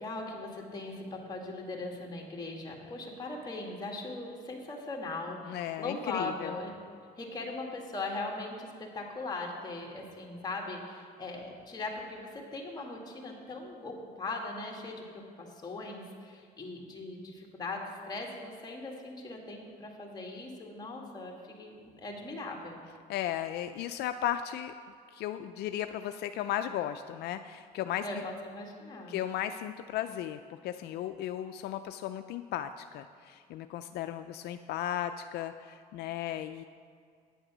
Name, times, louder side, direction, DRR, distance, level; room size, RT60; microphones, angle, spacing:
voice 1, 0.0-6.7 7.2-22.8 28.0-29.1, left 2 dB, 25° left, -1 dB, 1.9 m, -39 dB
voice 2, 5.4-6.6 23.1-24.7 25.1-28.1 29.1-36.6, left 11 dB, 75° left, 9 dB, 0.4 m, -35 dB
9.3 x 8.0 x 6.1 m, 2.2 s
cardioid pair, 110°, 17 cm